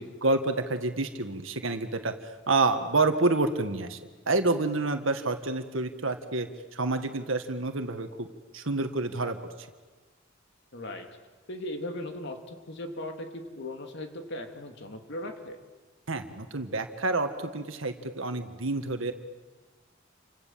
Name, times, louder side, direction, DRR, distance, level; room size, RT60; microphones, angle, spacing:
voice 1, 0.2-4.0 4.3-8.3 8.5-9.7 16.1-19.1, right 3 dB, 70° right, 6 dB, 1.8 m, -28 dB
voice 2, 10.7-11.1 11.5-15.6, left 1 dB, 60° left, 4 dB, 3.1 m, -38 dB
30.0 x 26.0 x 7.7 m, 1.3 s
head